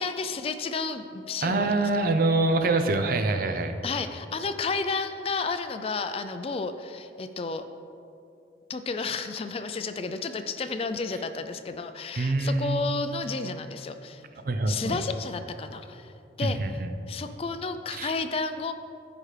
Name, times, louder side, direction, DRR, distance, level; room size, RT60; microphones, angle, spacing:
voice 1, 0.0-2.0 3.8-7.6 8.7-14.2 14.7-16.1 16.4-16.8 17.1-18.7, left 4 dB, 30° left, 9 dB, 0.3 m, -32 dB
voice 2, 1.4-3.7 12.2-12.8 14.4-15.0 16.4-16.9 17.9-18.1, right 2 dB, 50° right, 7 dB, 0.5 m, -25 dB
14.0 x 5.0 x 3.3 m, 2.7 s
head